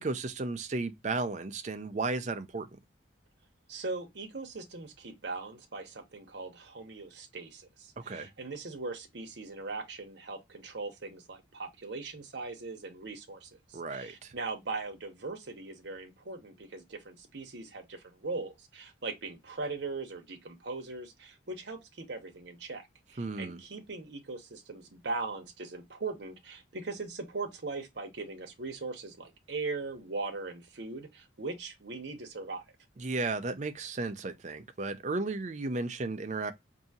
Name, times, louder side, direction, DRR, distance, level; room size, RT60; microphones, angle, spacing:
voice 1, 0.0-2.7 8.0-8.3 13.7-14.3 23.2-23.6 33.0-36.5, right 3 dB, 35° right, 0.5 m, -34 dB
voice 2, 3.7-22.8 23.1-32.6, right 3 dB, 60° right, 0.8 m, -40 dB
4.7 x 2.7 x 2.7 m
head